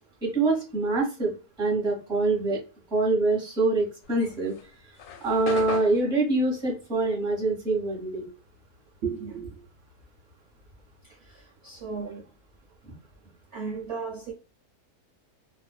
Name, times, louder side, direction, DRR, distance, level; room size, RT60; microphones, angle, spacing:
voice 1, 0.2-1.3 1.6-2.6 2.9-4.5 5.2-8.2, right 3 dB, 5° right, 0.8 m, -25 dB
sound 1, 4.0-8.8 9.0-11.0, left 7 dB, 85° left, 1.1 m, -40 dB
voice 2, 9.0-9.6 11.0-12.2 13.5-14.3, right 5 dB, 60° right, 0.7 m, -35 dB
2.5 x 2.3 x 2.2 m
omnidirectional pair, 1.6 m